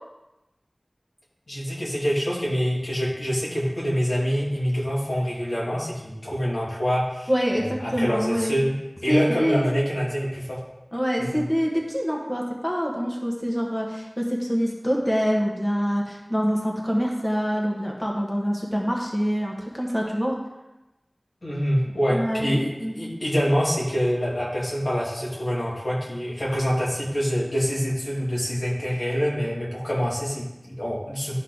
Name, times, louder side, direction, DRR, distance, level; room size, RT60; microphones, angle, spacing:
voice 1, 1.5-8.7 9.0-10.6 11.2-11.4 21.4-31.3, equal, 80° left, -6 dB, 2.7 m, -26 dB
voice 2, 7.3-8.5 9.1-9.7 10.9-20.4 22.1-22.5 22.8-23.0, equal, 15° left, -2 dB, 1.4 m, -25 dB
12.0 x 4.4 x 4.1 m, 0.98 s
wide cardioid pair, 45°, 0 cm